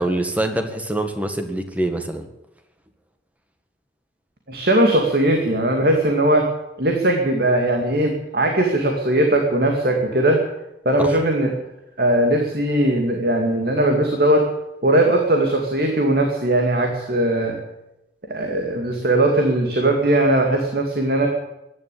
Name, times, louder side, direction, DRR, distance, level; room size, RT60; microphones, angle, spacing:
voice 1, 0.0-2.3 11.0-11.1, right 1 dB, 10° right, 7 dB, 1.7 m, -24 dB
voice 2, 4.5-6.5 6.8-10.4 10.9-11.5 12.0-14.4 14.8-17.6 18.3-21.3, right 1 dB, 55° right, 2 dB, 2.4 m, -19 dB
15.5 x 11.0 x 8.5 m, 0.91 s
head